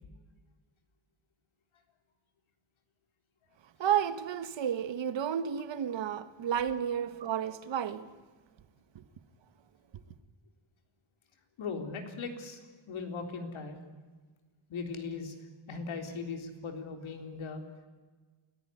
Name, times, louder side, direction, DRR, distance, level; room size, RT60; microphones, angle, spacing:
voice 1, 3.8-8.1 8.9-9.0, right 9 dB, 60° right, 1.5 m, -31 dB
voice 2, 11.6-12.6 12.9-13.8 14.7-15.4 15.7-17.6, left 4 dB, 70° left, 3.8 m, -38 dB
28.5 x 15.5 x 9.9 m
wide cardioid pair, 145°, 50 cm